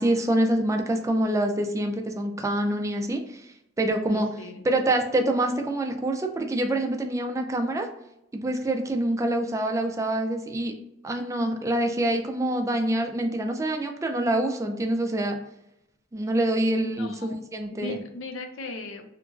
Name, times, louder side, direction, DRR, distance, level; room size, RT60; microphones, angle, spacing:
voice 1, 0.0-3.5 3.8-7.9 8.3-10.7 11.0-15.4 16.1-18.0, right 1 dB, 15° right, 4 dB, 0.3 m, -26 dB
voice 2, 3.9-4.6 16.7-17.4 17.8-19.0, left 1 dB, 80° left, 5 dB, 0.5 m, -36 dB
2.9 x 2.5 x 2.4 m, 0.83 s
head